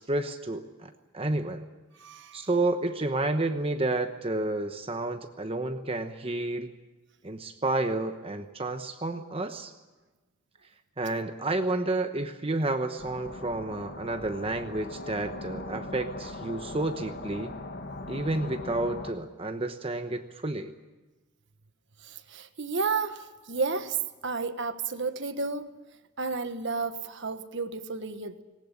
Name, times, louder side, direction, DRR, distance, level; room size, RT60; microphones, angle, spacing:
voice 1, 0.0-1.6 2.3-6.7 7.2-9.7 11.0-17.5 18.1-20.7, right 2 dB, 25° right, 7 dB, 1.0 m, -30 dB
voice 2, 2.0-2.5 22.0-24.0 24.2-25.7 26.2-28.4, right 4 dB, 60° right, 10 dB, 1.3 m, -32 dB
sound 1, 13.0-19.1, left 2 dB, 50° left, 1.5 m, -40 dB
19.5 x 18.5 x 9.8 m, 1.2 s
head